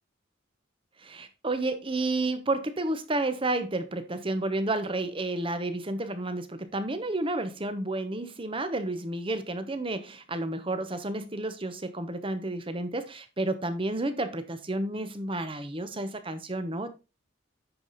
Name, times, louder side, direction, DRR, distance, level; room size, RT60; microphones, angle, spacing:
voice 1, 1.0-16.9, right 2 dB, 25° right, 1.0 m, -31 dB
9.7 x 4.9 x 4.1 m
head